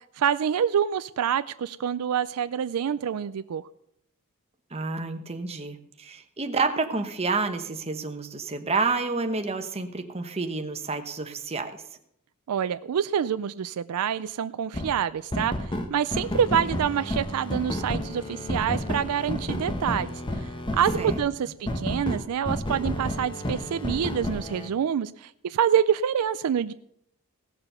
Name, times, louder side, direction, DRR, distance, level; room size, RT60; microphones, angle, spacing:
voice 1, 0.2-3.7 12.5-15.5 15.9-26.7, right 8 dB, 80° right, 14 dB, 0.4 m, -26 dB
voice 2, 4.7-11.7 21.0-21.1, right 3 dB, 30° right, 6 dB, 1.0 m, -29 dB
sound 1, 14.7-14.9 15.3-21.2 21.7-24.7, left 1 dB, 20° left, 1.0 m, -31 dB
17.0 x 6.9 x 5.6 m, 0.73 s
head